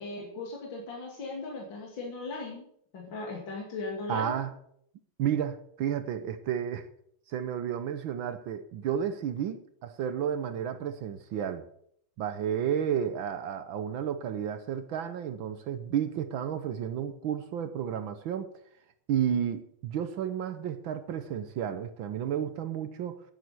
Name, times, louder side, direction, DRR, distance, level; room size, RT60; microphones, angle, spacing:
voice 1, 0.0-2.7 2.9-4.4, left 3 dB, 65° left, 3.1 m, -38 dB
voice 2, 4.1-4.5 5.2-6.9 7.3-11.7 12.2-18.5 19.1-23.2, right 9 dB, 75° right, 1.6 m, -32 dB
10.5 x 9.6 x 8.0 m
omnidirectional pair, 2.3 m